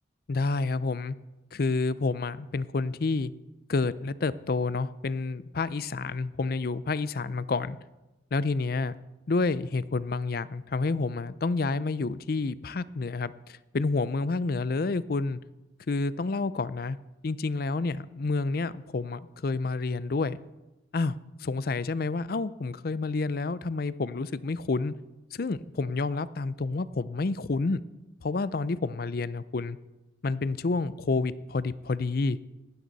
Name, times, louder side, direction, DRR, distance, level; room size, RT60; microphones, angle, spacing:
voice 1, 0.3-1.2 1.5-3.3 3.7-7.8 8.3-9.0 9.3-15.4 15.9-17.0 17.2-20.4 20.9-24.9 25.3-27.8 28.2-29.8 30.2-32.4, left 3 dB, 55° left, 17 dB, 0.5 m, -29 dB
18.0 x 12.5 x 4.1 m, 1.1 s
head